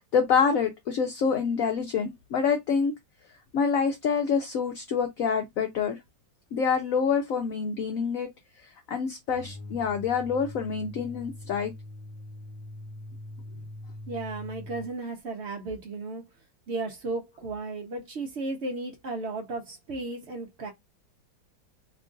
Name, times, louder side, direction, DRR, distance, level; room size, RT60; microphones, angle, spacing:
voice 1, 0.0-2.9 3.5-6.0 6.5-8.3 8.9-11.7, left 6 dB, 70° left, 0.8 m, -26 dB
sound 1, 9.3-14.9, left 1 dB, 50° left, 1.2 m, -42 dB
voice 2, 14.1-16.2 16.7-20.7, right 2 dB, 70° right, 0.6 m, -34 dB
3.0 x 2.4 x 3.7 m
omnidirectional pair, 1.9 m